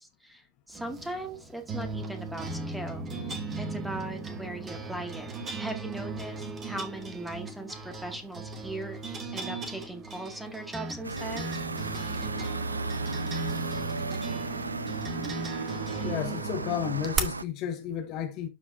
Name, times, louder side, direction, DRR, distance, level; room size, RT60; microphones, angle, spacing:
voice 1, 0.0-3.1 3.5-5.3 5.6-9.0 9.3-11.5, right 1 dB, 5° right, 2.1 m, -39 dB
sound 1, 0.7-17.2, right 3 dB, 20° right, 1.7 m, -37 dB
sound 2, 11.0-17.4, right 3 dB, 80° right, 0.5 m, -34 dB
voice 2, 16.0-18.5, left 9 dB, 40° left, 1.3 m, -32 dB
12.5 x 5.0 x 2.6 m
figure-of-eight pair, 90°, 0 cm